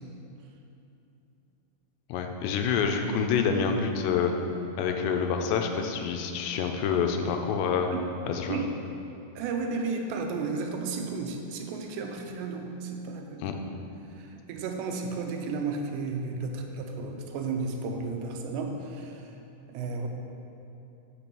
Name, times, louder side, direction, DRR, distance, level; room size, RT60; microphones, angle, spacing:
voice 1, 2.1-4.3 4.8-7.9 8.2-8.6 13.4-13.6, left 6 dB, 85° left, 4 dB, 2.8 m, -27 dB
voice 2, 9.4-13.6 14.2-19.3 19.7-20.1, right 4 dB, 85° right, 3 dB, 2.9 m, -33 dB
6.8 x 5.9 x 7.0 m, 2.8 s
omnidirectional pair, 4.9 m